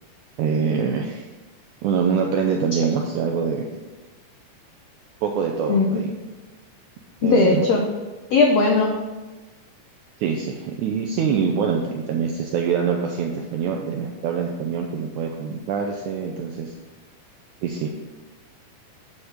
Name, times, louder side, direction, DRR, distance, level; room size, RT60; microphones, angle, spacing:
voice 1, 0.4-1.3 1.8-3.7 5.2-6.1 7.2-7.7 10.2-16.7 17.6-17.9, right 6 dB, 80° right, 2 dB, 1.8 m, -24 dB
voice 2, 5.7-6.0 7.2-7.8 8.3-8.9, left 4 dB, 80° left, 1 dB, 1.5 m, -18 dB
9.7 x 3.7 x 6.5 m, 1.2 s
omnidirectional pair, 4.0 m